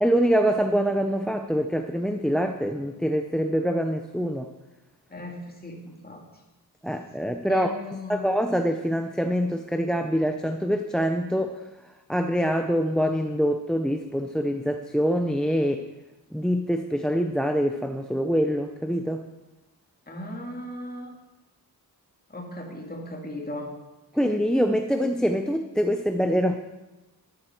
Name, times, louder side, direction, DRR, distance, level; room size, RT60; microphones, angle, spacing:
voice 1, 0.0-4.5 6.8-7.7 8.1-11.5 12.1-15.8 16.3-19.2 24.1-26.5, equal, ahead, 6 dB, 0.5 m, -25 dB
voice 2, 5.1-6.2 7.5-8.2 20.1-21.1 22.3-23.7, left 1 dB, 25° left, 0 dB, 2.2 m, -36 dB
13.0 x 11.5 x 4.4 m, 1.1 s
wide cardioid pair, 165°, 39 cm